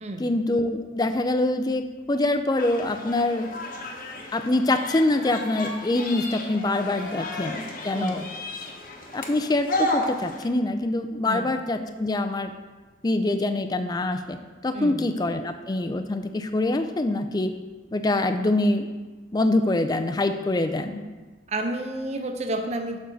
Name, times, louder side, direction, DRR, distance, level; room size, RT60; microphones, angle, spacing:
voice 1, 0.2-3.5 4.3-8.2 9.1-12.5 13.0-14.4 14.6-17.5 17.9-18.9 19.3-21.0, left 2 dB, 20° left, 7 dB, 0.4 m, -25 dB
sound 1, 2.6-10.4, left 1 dB, 45° left, 1.0 m, -33 dB
voice 2, 7.9-8.3 11.3-11.5 14.7-15.1 21.5-23.0, right 1 dB, 35° right, 5 dB, 0.6 m, -30 dB
7.0 x 4.6 x 6.2 m, 1.3 s
head